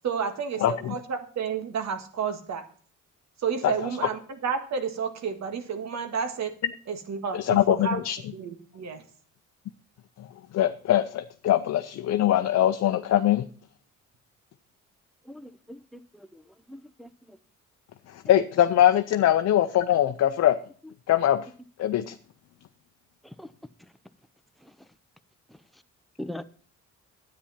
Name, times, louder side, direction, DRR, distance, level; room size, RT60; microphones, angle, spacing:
voice 1, 0.0-2.6 3.4-6.5 6.9-8.0 8.3-9.0, right 6 dB, 65° right, 1.8 m, -31 dB
voice 2, 0.6-1.0 3.6-3.9 7.3-8.2 10.2-10.3 10.5-13.4 18.1-20.6 21.1-21.5 21.8-22.2, left 12 dB, 60° left, 0.6 m, -22 dB
voice 3, 15.3-16.0 16.3-16.4 16.7-17.1 23.4-23.5 26.2-26.4, left 1 dB, ahead, 0.8 m, -40 dB
10.0 x 8.7 x 5.7 m
cardioid pair, 90°, 30 cm